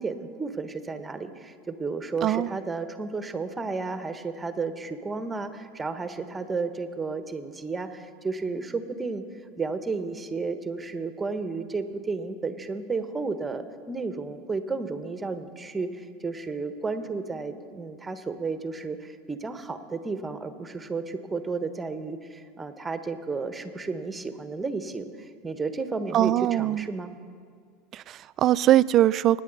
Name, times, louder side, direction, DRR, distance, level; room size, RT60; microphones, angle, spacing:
voice 1, 0.0-9.2 9.6-27.1, right 4 dB, 15° right, 9 dB, 1.2 m, -32 dB
voice 2, 2.2-2.6 26.1-26.9 27.9-29.4, right 13 dB, 45° right, 18 dB, 0.4 m, -22 dB
25.5 x 10.0 x 4.2 m, 2.1 s
hypercardioid pair, 80°, 0 cm